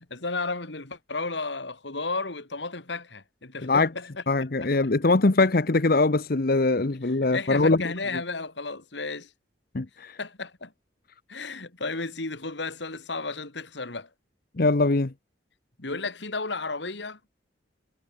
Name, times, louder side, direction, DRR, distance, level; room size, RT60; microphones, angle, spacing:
voice 1, 0.1-4.2 4.6-4.9 7.3-9.3 10.2-10.7 11.3-14.1 15.8-17.2, left 3 dB, 80° left, 2.8 m, -33 dB
voice 2, 4.3-7.8 9.7-10.2 14.6-15.1, left 3 dB, 55° left, 0.9 m, -22 dB
head